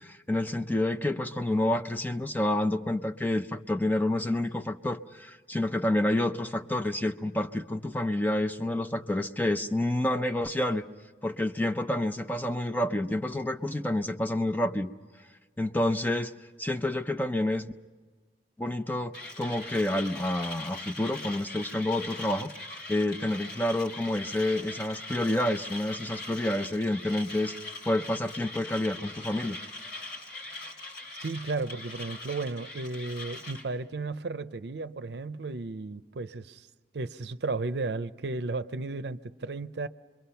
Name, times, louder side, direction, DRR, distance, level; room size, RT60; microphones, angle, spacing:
voice 1, 0.0-10.8 11.2-14.9 15.6-16.3 16.6-17.7 18.6-22.5 22.9-27.5 27.9-29.6, left 1 dB, 10° left, 0.6 m, -29 dB
Mechanisms, 19.1-33.7, left 2 dB, 65° left, 3.6 m, -41 dB
voice 2, 31.2-36.7 36.9-39.9, right 3 dB, 70° right, 0.6 m, -34 dB
27.0 x 22.5 x 5.7 m
head